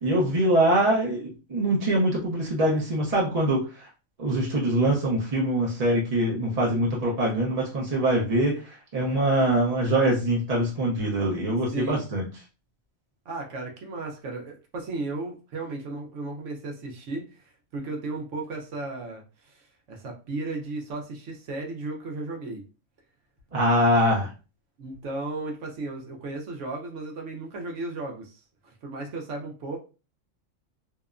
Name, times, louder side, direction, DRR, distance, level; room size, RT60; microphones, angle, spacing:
voice 1, 0.0-3.9 4.2-12.3 23.5-24.3, right 1 dB, 40° right, -3 dB, 0.5 m, -23 dB
voice 2, 11.7-12.0 13.3-17.4 17.7-22.6 24.8-29.8, right 2 dB, 65° right, 1 dB, 1.0 m, -35 dB
2.8 x 2.1 x 2.4 m, 0.33 s
omnidirectional pair, 1.4 m